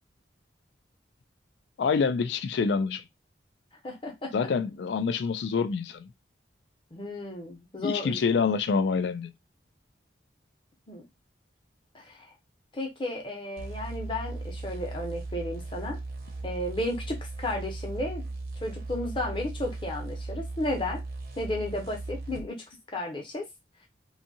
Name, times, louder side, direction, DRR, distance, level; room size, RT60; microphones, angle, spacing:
voice 1, 1.8-3.0 4.3-6.1 7.8-9.3, left 5 dB, 70° left, 0.3 m, -26 dB
voice 2, 3.8-4.3 6.9-8.2 10.9-11.0 11.9-12.3 12.7-16.0 16.4-18.2 18.6-21.0 21.4-23.4, left 1 dB, 30° left, 0.7 m, -33 dB
sound 1, 13.6-22.5, right 2 dB, 55° right, 0.7 m, -37 dB
2.7 x 2.3 x 2.7 m
head